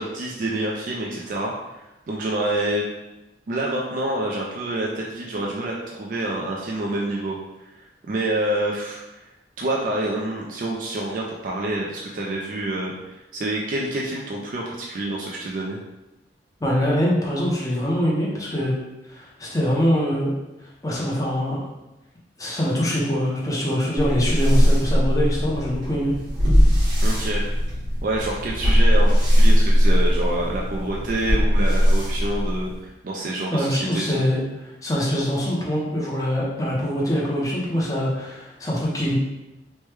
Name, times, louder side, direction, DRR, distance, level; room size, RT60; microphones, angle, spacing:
voice 1, 0.0-2.8 3.5-7.4 7.7-9.2 9.6-15.8 27.0-27.4 28.0-34.2, right 1 dB, 45° right, -3 dB, 0.3 m, -27 dB
voice 2, 16.6-18.7 19.1-20.3 20.8-21.7 22.4-26.1 33.5-34.4 34.8-39.1, equal, 20° left, -5 dB, 0.6 m, -23 dB
sound 1, 24.0-32.9, equal, 80° right, 1.2 m, -19 dB
3.1 x 2.1 x 3.2 m, 0.99 s
head